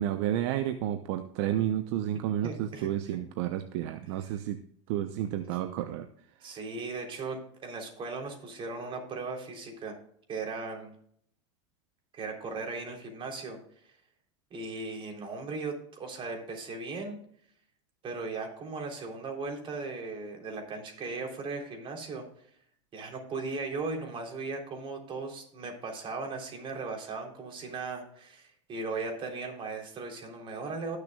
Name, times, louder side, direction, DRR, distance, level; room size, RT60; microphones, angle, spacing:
voice 1, 0.0-4.6 4.9-6.1 6.4-6.5, right 11 dB, 60° right, 9 dB, 0.8 m, -31 dB
voice 2, 2.4-2.9 6.4-10.0 10.3-10.9 12.1-13.9 14.5-17.2 18.0-22.2 22.9-31.0, right 3 dB, 35° right, 2 dB, 3.5 m, -37 dB
19.0 x 6.7 x 2.4 m, 0.67 s
hypercardioid pair, 100°, 15 cm